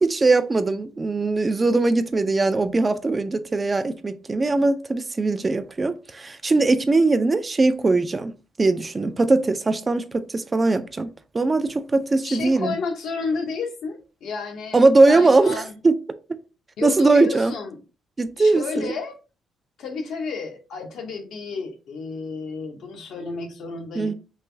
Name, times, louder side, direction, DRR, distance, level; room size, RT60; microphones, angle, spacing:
voice 1, 0.0-12.8 14.7-16.0 16.8-17.5 18.2-18.9 24.0-24.1, right 3 dB, 25° right, 0.3 m, -20 dB
voice 2, 12.2-15.8 16.8-17.8 18.4-19.1 19.8-24.1, left 4 dB, 75° left, 0.8 m, -31 dB
3.2 x 2.5 x 3.3 m
cardioid pair, 90°, 0 cm